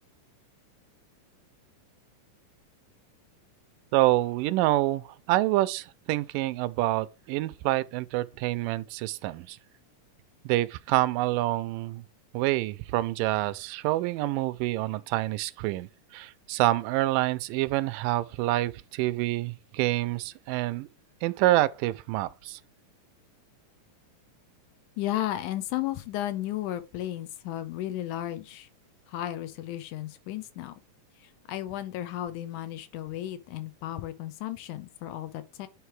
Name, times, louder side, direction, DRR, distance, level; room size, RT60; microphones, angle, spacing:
voice 1, 3.9-9.6 10.5-12.0 12.3-20.9 21.2-22.6, right 17 dB, 90° right, 2.2 m, -27 dB
voice 2, 25.0-28.7 29.1-30.8 31.2-35.7, left 13 dB, 80° left, 2.0 m, -34 dB
9.1 x 3.3 x 4.7 m
omnidirectional pair, 3.8 m